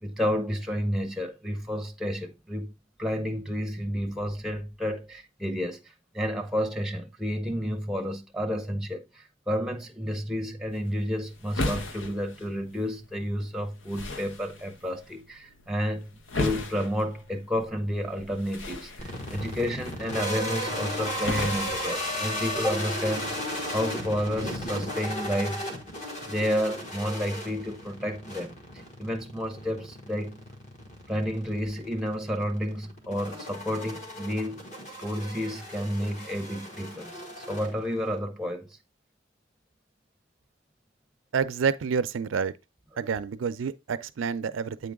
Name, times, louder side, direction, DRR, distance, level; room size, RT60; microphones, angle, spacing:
voice 1, 0.0-2.7 3.0-5.8 6.1-23.4 23.7-25.6 26.3-28.6 29.0-30.4 31.1-34.7 35.0-38.7, equal, ahead, 0.7 m, -31 dB
sound 1, 10.7-22.7, left 2 dB, 80° left, 0.9 m, -38 dB
sound 2, 19.0-38.2, equal, 40° left, 1.6 m, -36 dB
voice 2, 41.3-42.5 43.0-44.9, right 6 dB, 85° right, 0.4 m, -28 dB
8.4 x 3.8 x 3.5 m
head